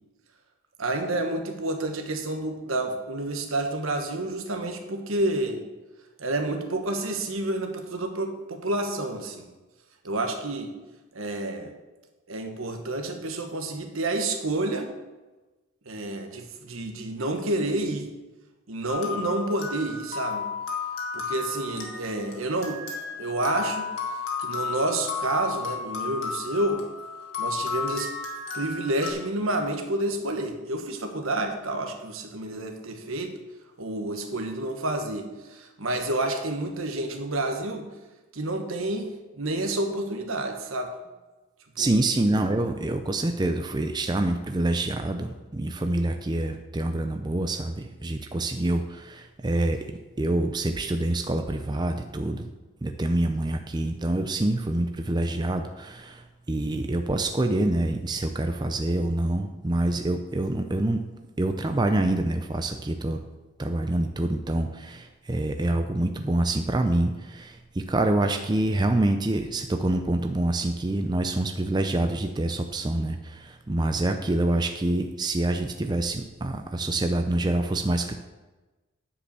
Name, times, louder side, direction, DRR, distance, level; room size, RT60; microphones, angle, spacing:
voice 1, 0.8-5.6 6.2-9.5 10.0-10.7 11.1-11.7 12.3-14.9 15.8-18.1 18.7-20.5 21.1-22.8 23.1-23.9 24.4-26.8 27.4-28.1 28.5-33.4 33.8-37.9 38.3-39.1 39.4-40.9 41.8-42.0, right 2 dB, 75° right, 5 dB, 1.3 m, -29 dB
sound 1, 18.9-29.1, left 5 dB, 65° left, 1.9 m, -33 dB
voice 2, 41.8-49.8 50.2-52.5 52.8-61.1 61.4-63.2 63.6-78.2, right 1 dB, 20° right, 6 dB, 0.4 m, -26 dB
9.9 x 5.2 x 6.9 m, 1.2 s
head